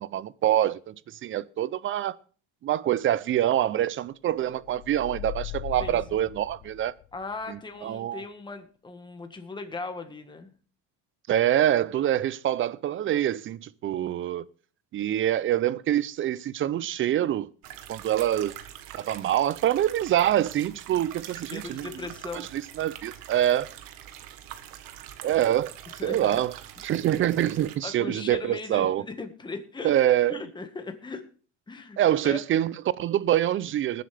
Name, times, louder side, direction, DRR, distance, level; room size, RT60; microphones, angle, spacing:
voice 1, 0.0-2.2 2.6-6.9 7.5-8.2 11.3-14.4 14.9-17.5 17.9-18.5 18.9-21.9 22.3-23.7 25.2-25.7 26.0-26.5 26.8-29.0 29.8-30.4 32.0-34.0, right 12 dB, 35° right, 0.5 m, -25 dB
sound 1, 4.6-7.2, left 21 dB, 55° left, 0.6 m, -39 dB
voice 2, 7.1-10.5 21.5-22.5 26.0-26.4 27.8-29.9 30.3-31.2 31.7-32.4, left 3 dB, 15° left, 1.6 m, -38 dB
sound 2, 17.6-27.8, right 11 dB, 70° right, 1.4 m, -44 dB
20.0 x 7.9 x 3.4 m
supercardioid pair, 115°, 35 cm